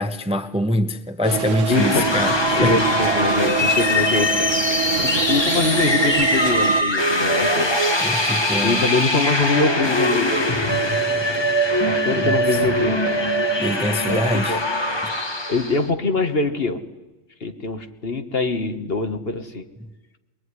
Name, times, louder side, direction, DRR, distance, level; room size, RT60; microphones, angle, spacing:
voice 1, 0.0-2.8 8.0-8.8 12.1-12.6 13.6-14.6 15.0-15.1 19.8-19.9, left 1 dB, 5° right, 0.8 m, -24 dB
sound 1, 1.2-6.8, right 7 dB, 85° right, 1.6 m, -25 dB
voice 2, 1.7-2.2 2.6-7.7 8.6-10.8 11.9-13.7 14.1-14.2 14.5-14.7 15.5-16.8 17.4-19.6, left 3 dB, 50° left, 1.7 m, -24 dB
sound 2, 1.7-15.8, left 1 dB, 20° left, 1.5 m, -22 dB
22.5 x 22.5 x 9.8 m
omnidirectional pair, 1.3 m